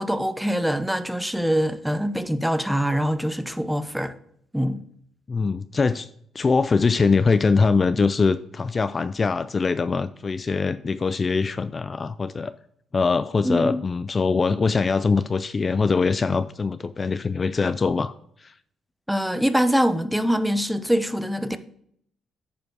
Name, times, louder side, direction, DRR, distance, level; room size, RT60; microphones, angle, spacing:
voice 1, 0.0-4.1 4.5-4.8 13.4-13.8 19.1-21.6, equal, 5° right, 0.7 m, -24 dB
voice 2, 5.3-6.1 6.3-12.5 12.9-18.1 18.4-18.5, left 4 dB, 35° left, 0.3 m, -22 dB
9.4 x 5.2 x 4.7 m
cardioid pair, 90°, 0 cm